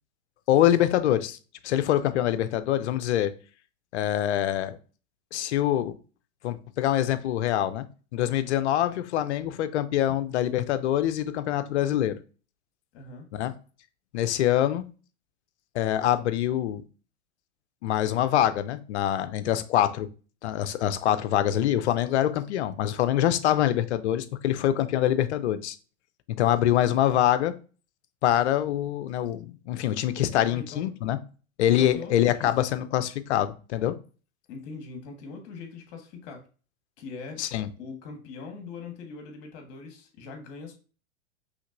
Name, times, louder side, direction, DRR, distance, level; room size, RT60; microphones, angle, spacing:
voice 1, 0.5-1.4 1.6-3.3 3.9-4.8 5.3-5.9 6.4-7.8 8.1-12.1 13.3-13.5 14.1-14.8 15.7-16.8 17.8-20.1 20.4-25.8 26.3-27.5 28.2-31.2 31.6-34.0 37.4-37.7, left 12 dB, 70° left, 12 dB, 0.6 m, -25 dB
voice 2, 12.9-13.3 30.5-31.0 31.7-32.5 34.5-36.4 37.0-37.4 37.8-40.7, left 4 dB, 50° left, 4 dB, 1.4 m, -41 dB
5.1 x 3.2 x 2.5 m, 0.37 s
hypercardioid pair, 100°, 36 cm